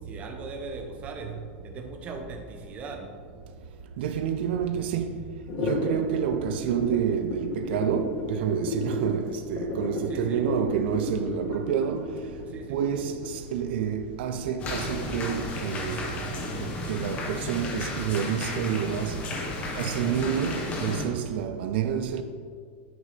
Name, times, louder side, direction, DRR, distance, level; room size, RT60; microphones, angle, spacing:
voice 1, 0.1-1.3 1.6-3.2 10.1-10.4 12.5-12.8, right 3 dB, 25° right, 0.7 m, -39 dB
voice 2, 4.0-5.2 5.6-12.1 12.7-16.2 16.6-19.2 19.8-22.2, right 8 dB, 70° right, 0.5 m, -28 dB
sound 1, 5.4-13.3, left 2 dB, 50° left, 1.3 m, -32 dB
sound 2, 14.6-21.1, left 2 dB, 25° left, 0.9 m, -33 dB
8.9 x 6.5 x 3.3 m
supercardioid pair, 170°, 6 cm